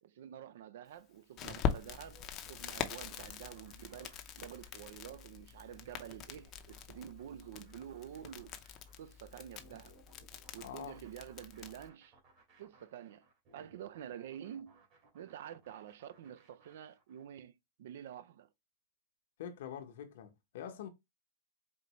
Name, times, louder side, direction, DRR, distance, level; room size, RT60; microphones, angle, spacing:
voice 1, 0.0-8.5 9.0-10.0 10.5-12.2 12.6-13.3 13.5-14.8 15.1-18.5, right 10 dB, 70° right, 0.4 m, -48 dB
Crackle, 1.4-11.9, left 7 dB, 35° left, 0.6 m, -43 dB
sound 1, 1.8-17.3, right 3 dB, 45° right, 1.9 m, -65 dB
voice 2, 10.6-11.0 19.4-20.9, left 9 dB, 70° left, 0.9 m, -45 dB
4.5 x 2.6 x 3.1 m
hypercardioid pair, 115°, 0 cm